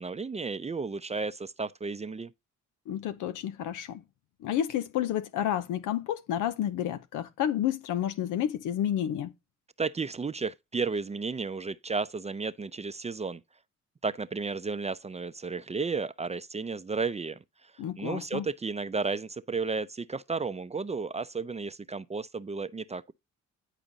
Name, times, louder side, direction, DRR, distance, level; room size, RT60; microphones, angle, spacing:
voice 1, 0.0-2.3 9.8-13.4 14.0-17.7 18.0-23.1, right 4 dB, 20° right, 0.6 m, -33 dB
voice 2, 2.9-4.0 4.4-9.3 17.8-18.5, left 10 dB, 85° left, 0.8 m, -30 dB
10.5 x 4.9 x 4.0 m
cardioid pair, 90°, 30 cm